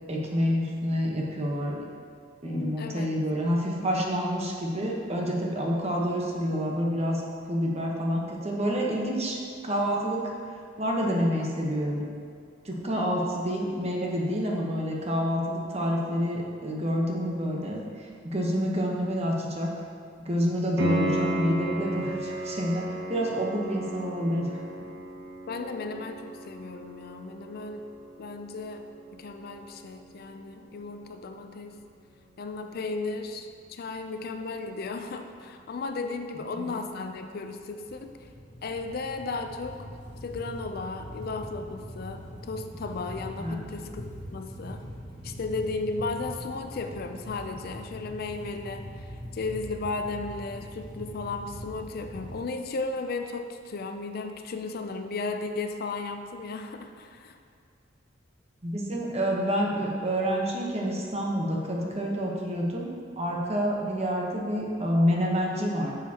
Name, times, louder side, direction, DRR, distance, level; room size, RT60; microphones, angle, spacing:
voice 1, 0.1-1.8 2.4-9.4 9.6-10.3 10.8-12.0 12.6-17.8 18.2-19.7 20.2-22.8 23.1-24.5 24.8-24.9 36.5-36.7 43.4-43.6 58.6-65.9, equal, 35° right, -1 dB, 1.0 m, -28 dB
voice 2, 2.4-3.2 25.5-27.9 28.2-31.8 32.4-38.3 38.6-39.9 40.2-44.8 45.2-57.4, left 3 dB, 55° left, 6 dB, 0.4 m, -35 dB
Piano, 20.8-31.4 34.7-34.8, right 1 dB, 60° right, 1.3 m, -35 dB
sound 1, 37.9-52.4, equal, 70° left, 1.5 m, -42 dB
8.9 x 6.5 x 2.9 m, 2.3 s
head